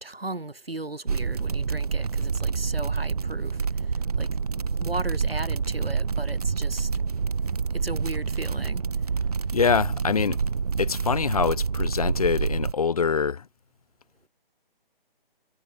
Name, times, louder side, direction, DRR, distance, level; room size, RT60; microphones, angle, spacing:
voice 1, 0.0-3.6 4.2-4.3 4.8-6.9 7.7-8.8, right 2 dB, 85° right, 1.8 m, -36 dB
sound 1, 1.1-12.7, right 5 dB, 40° right, 0.5 m, -27 dB
voice 2, 9.5-10.4 10.8-13.5, left 6 dB, 40° left, 1.1 m, -24 dB
figure-of-eight pair, 145°, 29 cm